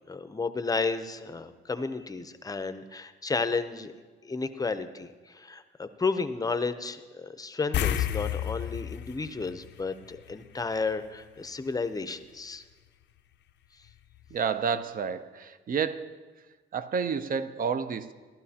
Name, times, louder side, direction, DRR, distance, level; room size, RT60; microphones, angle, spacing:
voice 1, 0.1-3.9 4.2-12.6, left 4 dB, 20° left, 10 dB, 0.6 m, -32 dB
sound 1, 7.7-10.5 10.8-11.0 13.9-14.0 14.3-14.4, left 11 dB, 65° left, 0.5 m, -31 dB
voice 2, 14.3-16.2 16.7-18.1, right 6 dB, 45° right, 12 dB, 0.6 m, -30 dB
14.5 x 12.0 x 2.8 m, 1.4 s
cardioid pair, 90°, 20 cm